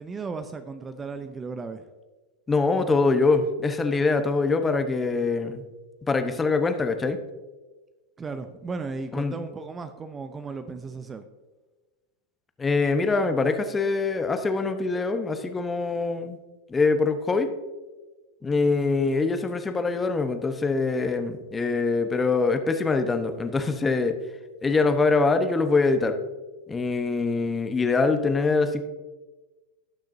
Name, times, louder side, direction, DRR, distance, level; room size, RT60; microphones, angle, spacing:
voice 1, 0.0-1.8 8.2-11.2, right 4 dB, 20° right, 10 dB, 0.6 m, -35 dB
voice 2, 2.5-5.6 6.0-7.2 9.1-9.3 12.6-16.4 16.7-17.5 18.4-24.1 24.6-26.2 26.7-28.8, left 3 dB, 15° left, 8 dB, 1.0 m, -24 dB
18.0 x 6.4 x 2.7 m, 1.2 s
figure-of-eight pair, 90°, 0 cm